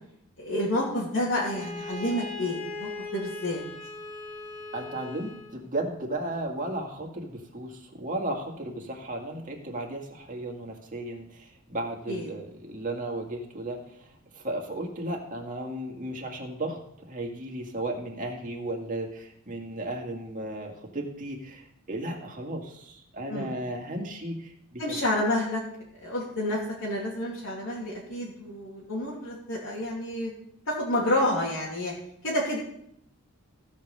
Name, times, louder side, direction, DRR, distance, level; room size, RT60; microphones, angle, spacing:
voice 1, 0.4-3.6 12.1-12.3 23.3-23.6 24.8-25.6 26.0-30.3 30.7-31.9 32.2-32.6, left 1 dB, 65° left, -6 dB, 2.7 m, -29 dB
Bowed string instrument, 1.4-5.6, left 3 dB, 30° left, 3.1 m, -39 dB
voice 2, 4.7-14.1 14.3-16.8 17.1-25.0, right 1 dB, 40° right, 1 dB, 2.0 m, -35 dB
15.5 x 5.4 x 6.5 m, 0.73 s
head